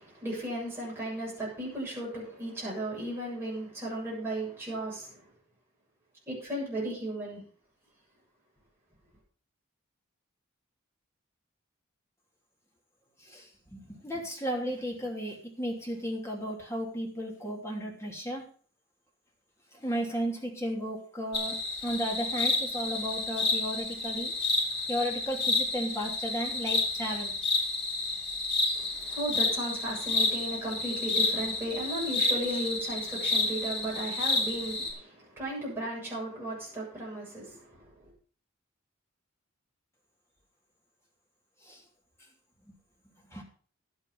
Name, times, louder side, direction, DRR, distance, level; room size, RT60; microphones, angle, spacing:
voice 1, 0.0-5.2 6.3-7.4 28.7-37.8, right 1 dB, 10° right, -5 dB, 7.4 m, -35 dB
voice 2, 13.7-18.4 19.8-21.6 21.8-24.3 24.9-27.3 41.7-41.8 43.3-43.4, equal, 15° left, -1 dB, 3.1 m, -34 dB
sound 1, 21.3-34.9, left 3 dB, 55° left, 4.7 m, -30 dB
11.5 x 9.2 x 5.4 m, 0.44 s
head